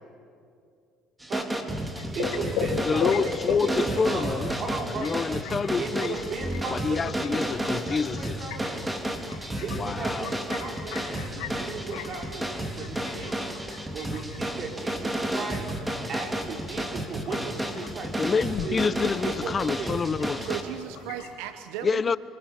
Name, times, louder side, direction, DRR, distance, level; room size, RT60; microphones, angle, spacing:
sound 1, 1.2-20.6, right 1 dB, 10° right, 3.2 m, -32 dB
sound 2, 2.0-21.3, left 7 dB, 80° left, 4.5 m, -38 dB
voice 1, 2.2-5.2 5.8-9.1 9.6-13.5 13.9-19.0 19.2-20.0, right 4 dB, 50° right, 1 dB, 5.3 m, -36 dB
voice 2, 2.9-4.5 4.9-6.2 6.7-8.5 9.6-10.3 18.2-20.5 21.8-22.2, left 5 dB, 35° left, 18 dB, 0.6 m, -27 dB
voice 3, 20.4-22.2, right 11 dB, 85° right, 10 dB, 1.0 m, -36 dB
26.5 x 25.5 x 7.5 m, 2.4 s
supercardioid pair, 80°, 0 cm